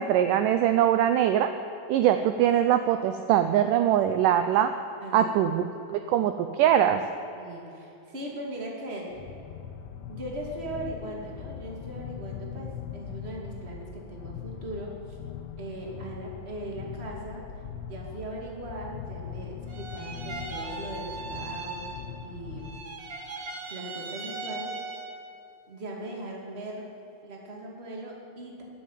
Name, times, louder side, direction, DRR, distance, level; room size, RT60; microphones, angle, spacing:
voice 1, 0.0-1.5 1.9-4.7 5.1-5.6 5.9-7.0, right 10 dB, 80° right, 9 dB, 2.0 m, -22 dB
voice 2, 5.0-5.7 7.3-9.3 10.1-15.2 15.6-17.4 17.9-22.8 23.7-25.0 25.7-26.9 27.2-28.6, right 1 dB, 20° right, -1 dB, 2.2 m, -39 dB
sound 1, 9.1-22.8, left 8 dB, 85° left, 1.4 m, -41 dB
sound 2, 19.7-22.3 22.6-25.3, right 3 dB, 60° right, 1.1 m, -38 dB
12.0 x 11.0 x 9.2 m, 2.9 s
omnidirectional pair, 4.2 m